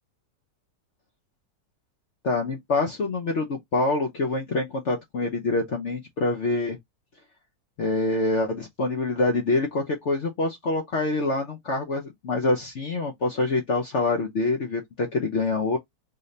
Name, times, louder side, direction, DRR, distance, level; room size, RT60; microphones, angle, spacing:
voice 1, 2.2-6.8 7.8-15.8, left 3 dB, 55° left, 0.9 m, -26 dB
4.0 x 2.7 x 3.2 m
omnidirectional pair, 1.8 m